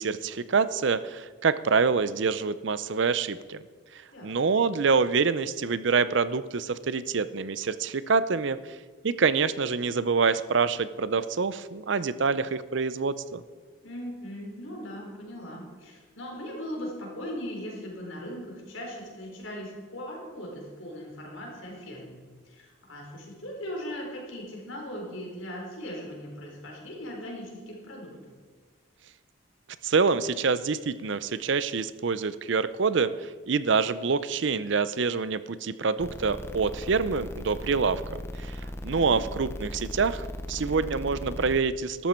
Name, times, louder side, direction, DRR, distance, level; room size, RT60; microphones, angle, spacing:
voice 1, 0.0-3.6 4.2-8.6 9.0-13.4 29.8-38.5 38.8-42.1, right 5 dB, 65° right, 15 dB, 0.6 m, -26 dB
voice 2, 4.1-4.5 13.8-28.3 38.9-39.3, equal, 75° left, -1 dB, 4.3 m, -39 dB
sound 1, 36.0-41.6, left 1 dB, 10° left, 0.6 m, -38 dB
13.0 x 12.5 x 4.4 m, 1.5 s
head